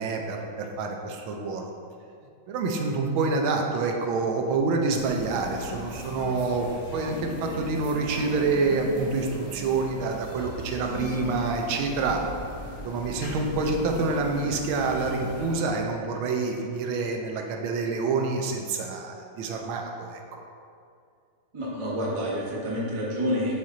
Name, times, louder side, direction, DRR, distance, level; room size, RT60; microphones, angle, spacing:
voice 1, 0.0-1.7 2.5-12.2 12.8-20.4, right 3 dB, 80° right, 2 dB, 1.4 m, -27 dB
sound 1, 4.9-15.5, left 1 dB, 65° left, 1.6 m, -38 dB
voice 2, 21.5-23.6, equal, 30° right, -5 dB, 0.5 m, -28 dB
6.1 x 4.1 x 3.7 m, 2.4 s
omnidirectional pair, 2.3 m